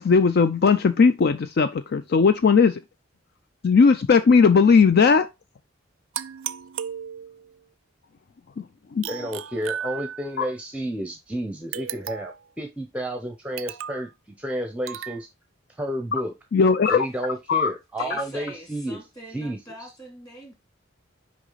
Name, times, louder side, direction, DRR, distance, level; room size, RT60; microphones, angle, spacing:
voice 1, 0.0-2.8 3.6-5.3 8.6-8.7 8.9-9.1 10.4-10.5 16.5-17.0 17.5-17.7, left 5 dB, 55° left, 0.4 m, -18 dB
sound 1, 6.1-7.6 9.0-10.5 11.7-12.5 13.6-14.1 14.9-15.2, right 9 dB, 80° right, 0.4 m, -35 dB
voice 2, 9.1-14.1 14.4-15.3 15.8-16.3 16.9-19.0 19.3-19.6, equal, 5° right, 0.7 m, -31 dB
voice 3, 18.0-20.6, right 1 dB, 20° left, 2.8 m, -42 dB
6.1 x 4.9 x 3.9 m
head